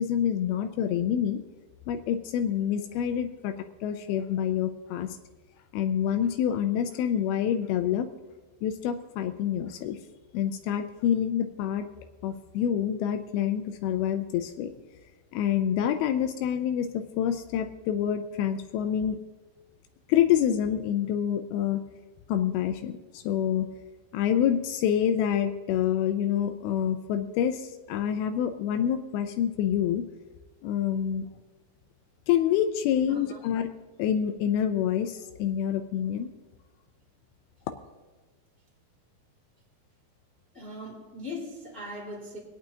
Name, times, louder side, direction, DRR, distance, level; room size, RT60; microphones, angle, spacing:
voice 1, 0.0-1.4 1.9-3.5 3.8-5.1 5.7-8.1 8.6-10.0 10.3-11.9 12.2-14.7 15.3-19.2 20.1-21.8 22.3-23.7 24.1-30.1 30.6-31.3 32.3-33.7 34.0-36.3, left 9 dB, 85° left, 6 dB, 2.5 m, -27 dB
voice 2, 33.0-33.4 40.5-42.4, left 1 dB, 25° left, -2 dB, 1.4 m, -39 dB
25.5 x 8.8 x 2.8 m, 1.2 s
omnidirectional pair, 4.4 m